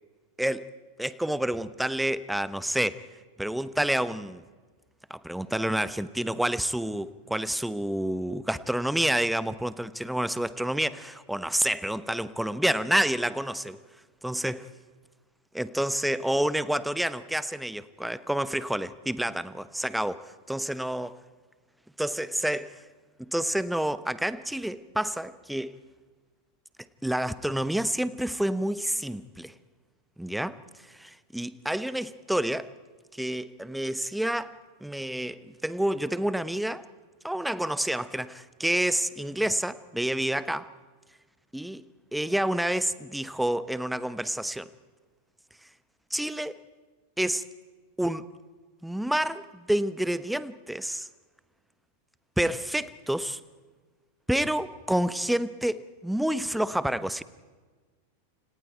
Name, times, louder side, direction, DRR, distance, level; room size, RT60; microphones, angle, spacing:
voice 1, 1.0-3.0 3.4-4.4 5.1-13.8 14.2-14.6 15.5-21.1 22.0-22.8 23.2-25.8 27.0-29.5 30.2-32.7 33.1-36.9 37.2-40.7 41.5-41.8 42.1-44.7 46.1-46.6 47.2-47.4 48.0-48.3 48.8-51.1 52.4-53.4 54.3-57.2, right 1 dB, ahead, 0.9 m, -29 dB
30.0 x 27.5 x 4.6 m
figure-of-eight pair, 90°, 0 cm